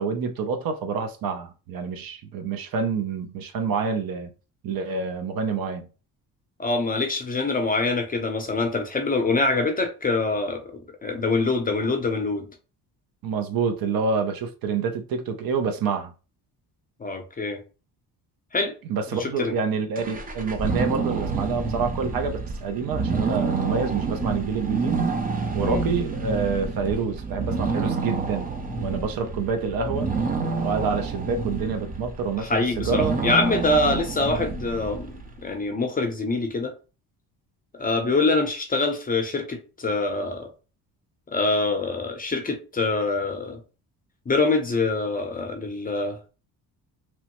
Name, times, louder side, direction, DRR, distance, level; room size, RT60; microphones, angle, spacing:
voice 1, 0.0-4.3 4.6-5.9 13.2-16.1 18.9-25.0 25.5-30.1 30.6-33.1, right 5 dB, 60° right, 0.6 m, -27 dB
voice 2, 6.6-10.6 11.0-12.5 17.0-17.6 18.5-18.7 19.2-19.5 25.6-25.8 32.4-36.7 37.7-40.5 41.3-43.6 44.3-46.3, left 3 dB, 20° left, 0.6 m, -25 dB
sound 1, 20.0-35.4, right 4 dB, 25° right, 0.5 m, -28 dB
3.0 x 2.0 x 2.9 m
cardioid pair, 105°, 39 cm